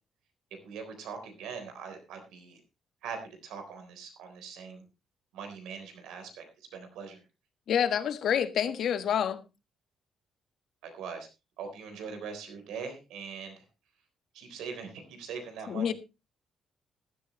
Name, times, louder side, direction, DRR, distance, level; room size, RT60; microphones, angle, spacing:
voice 1, 0.6-2.6 3.0-4.8 5.3-6.4 6.7-7.2 10.8-11.3 11.6-13.6 14.3-15.9, right 6 dB, 90° right, 3.7 m, -41 dB
voice 2, 7.7-9.4 15.7-15.9, left 8 dB, 70° left, 1.4 m, -27 dB
15.0 x 12.5 x 3.1 m
cardioid pair, 90°, 0 cm